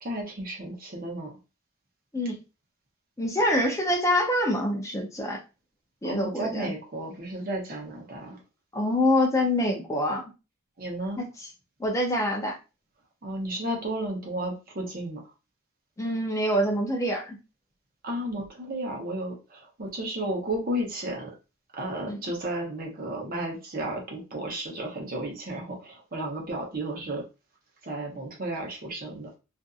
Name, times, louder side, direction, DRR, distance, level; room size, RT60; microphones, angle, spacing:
voice 1, 0.0-1.3 6.0-8.4 10.8-11.2 13.2-15.2 18.0-21.3 21.7-27.2 27.8-29.3, right 1 dB, 45° right, -1 dB, 0.8 m, -33 dB
voice 2, 3.2-5.4 6.0-6.7 8.7-10.2 11.2-11.5 11.8-12.6 16.0-17.4 22.1-22.2, left 1 dB, 15° left, 1 dB, 0.5 m, -25 dB
2.6 x 2.5 x 2.3 m, 0.29 s
head